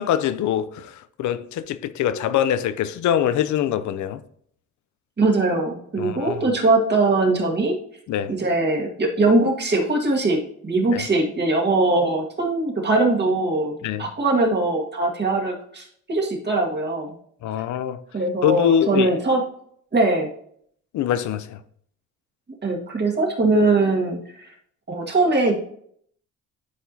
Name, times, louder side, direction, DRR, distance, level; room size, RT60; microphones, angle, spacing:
voice 1, 0.0-4.2 6.0-6.4 8.1-8.3 10.9-11.0 13.8-14.1 17.4-18.0 18.4-19.1 20.9-21.6, left 10 dB, 70° left, 0.6 m, -23 dB
voice 2, 5.2-7.8 8.3-17.1 18.1-19.4 19.9-20.3 22.6-24.5 24.9-25.5, right 2 dB, 35° right, 1.9 m, -21 dB
11.0 x 4.7 x 2.7 m
cardioid pair, 90°, 30 cm